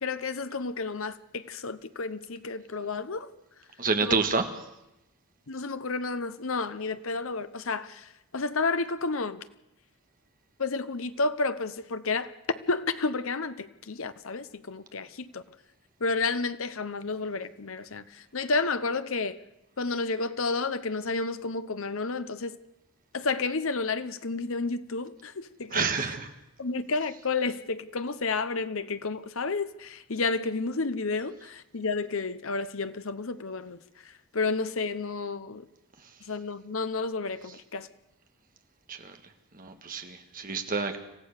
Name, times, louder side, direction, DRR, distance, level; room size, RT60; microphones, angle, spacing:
voice 1, 0.0-3.3 4.0-4.2 5.5-9.4 10.6-12.3 12.7-15.4 16.0-19.4 19.8-22.6 23.1-26.1 26.6-33.8 34.3-35.7 36.3-37.9, left 3 dB, 65° left, 0.9 m, -31 dB
voice 2, 3.8-4.5 25.7-26.3 38.9-39.0 39.6-41.0, right 4 dB, 40° right, 1.8 m, -28 dB
26.5 x 15.0 x 6.7 m
head